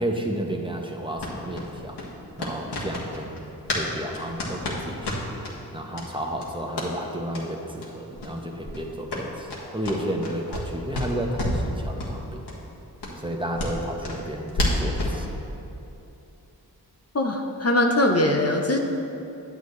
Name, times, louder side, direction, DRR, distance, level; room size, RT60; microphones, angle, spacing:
voice 1, 0.0-2.0 2.4-5.2 5.7-12.4 13.2-15.4, right 1 dB, 10° right, 1 dB, 1.0 m, -32 dB
sound 1, 1.2-3.9 4.1-5.5 5.9-6.1 6.4-6.9 7.3-7.5 7.8-7.9 8.1-8.3 8.6-10.7 10.9-11.7 12.0-12.1 12.5-12.6 13.0-15.2, left 1 dB, 75° left, 1.6 m, -30 dB
voice 2, 17.1-18.8, left 1 dB, 35° left, 2 dB, 0.8 m, -21 dB
9.2 x 8.0 x 3.2 m, 2.8 s
cardioid pair, 45°, 41 cm